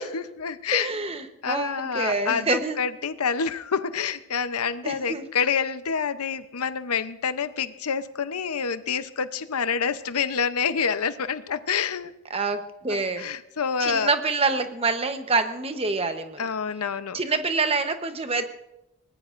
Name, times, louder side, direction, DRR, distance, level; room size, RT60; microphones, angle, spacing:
voice 1, 0.1-0.9 1.4-12.1 12.9-14.1 16.4-17.2, left 6 dB, 85° left, 12 dB, 0.7 m, -27 dB
voice 2, 0.7-2.8 4.8-5.2 12.3-13.3 13.8-16.4 17.1-18.4, right 3 dB, 25° right, 7 dB, 1.0 m, -26 dB
23.0 x 19.0 x 2.6 m, 0.90 s
head